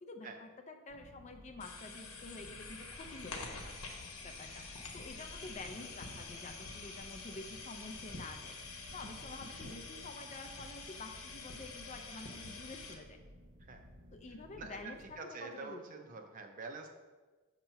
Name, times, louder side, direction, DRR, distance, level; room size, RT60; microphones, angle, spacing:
voice 1, 0.0-3.7 4.2-4.7 4.9-8.6 8.9-13.2 14.1-16.2, left 2 dB, 30° left, 5 dB, 0.4 m, -49 dB
sound 1, 0.9-15.2, equal, 60° right, 1.1 m, -57 dB
sound 2, 1.6-12.9, left 3 dB, 80° left, 0.9 m, -47 dB
voice 2, 14.5-16.9, right 4 dB, 35° right, 4 dB, 0.5 m, -46 dB
6.5 x 2.9 x 5.5 m, 1.3 s
head